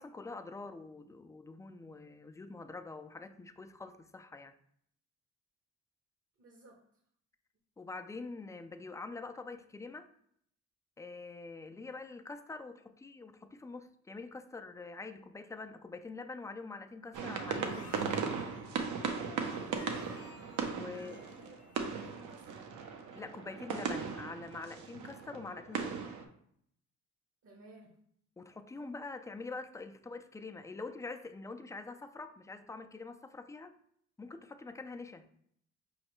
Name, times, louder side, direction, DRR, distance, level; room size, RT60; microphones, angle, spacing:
voice 1, 0.0-4.5 7.8-10.1 11.0-18.1 20.7-21.3 23.1-26.2 28.4-33.8 34.2-35.3, left 3 dB, 10° left, 8 dB, 0.3 m, -45 dB
voice 2, 6.4-6.8 20.8-21.6 21.9-22.7 27.4-28.0, right 2 dB, 50° right, 0 dB, 0.9 m, -56 dB
sound 1, 17.1-26.2, right 6 dB, 75° right, 0.7 m, -38 dB
sound 2, 17.3-22.2, left 4 dB, 55° left, 0.7 m, -55 dB
4.8 x 3.1 x 3.0 m, 0.68 s
cardioid pair, 90°, 30 cm